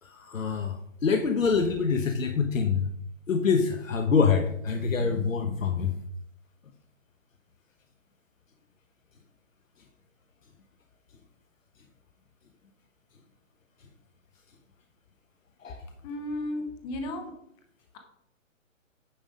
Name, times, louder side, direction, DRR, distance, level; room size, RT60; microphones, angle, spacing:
voice 1, 0.0-2.9 3.3-5.9 15.6-15.8, left 5 dB, 70° left, 5 dB, 1.2 m, -25 dB
voice 2, 16.0-17.3, left 1 dB, 10° left, 5 dB, 0.7 m, -34 dB
10.0 x 5.5 x 5.0 m, 0.70 s
hypercardioid pair, 145°, 40 cm